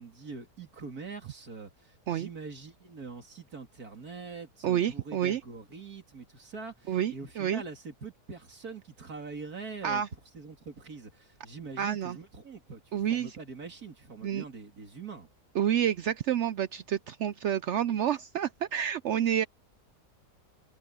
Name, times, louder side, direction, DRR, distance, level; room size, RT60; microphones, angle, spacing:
voice 1, 0.0-10.0 10.3-15.3, right 4 dB, 60° right, 3.1 m, -44 dB
voice 2, 4.6-5.4 6.9-7.6 9.8-10.1 11.8-12.2 12.9-13.4 14.2-14.4 15.5-19.4, right 9 dB, 85° right, 0.6 m, -29 dB
omnidirectional pair, 1.8 m